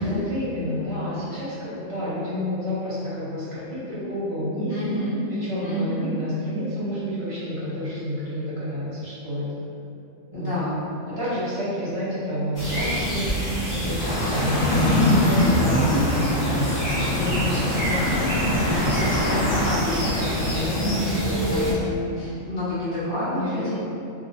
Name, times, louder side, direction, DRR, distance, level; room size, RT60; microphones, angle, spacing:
voice 1, 0.0-4.9 5.3-9.5 10.3-10.6 11.1-13.3 13.6-16.0 20.8-21.6 23.3-23.7, equal, 55° right, -10 dB, 1.1 m, -29 dB
voice 2, 4.7-5.2 5.6-6.1 10.3-10.8 15.2-16.1 16.6-23.7, left 1 dB, 55° left, -11 dB, 0.9 m, -29 dB
sound 1, 12.6-21.7, equal, 20° left, 0.5 m, -26 dB
sound 2, 14.0-19.8, left 1 dB, 85° left, 1.2 m, -24 dB
3.0 x 2.0 x 3.8 m, 2.7 s
omnidirectional pair, 1.4 m